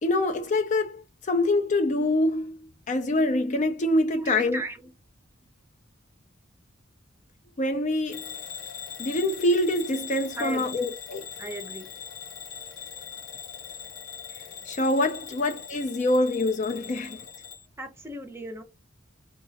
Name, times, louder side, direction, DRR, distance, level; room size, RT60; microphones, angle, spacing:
voice 1, 0.0-4.6 7.6-8.3 9.0-11.2 14.7-17.3, left 1 dB, 35° left, 0.4 m, -25 dB
voice 2, 4.1-4.9 10.4-10.8 11.4-11.9 17.8-18.6, right 1 dB, 10° right, 0.6 m, -36 dB
Bell / Alarm, 8.1-17.7, left 7 dB, 70° left, 0.7 m, -41 dB
3.0 x 2.3 x 3.9 m
head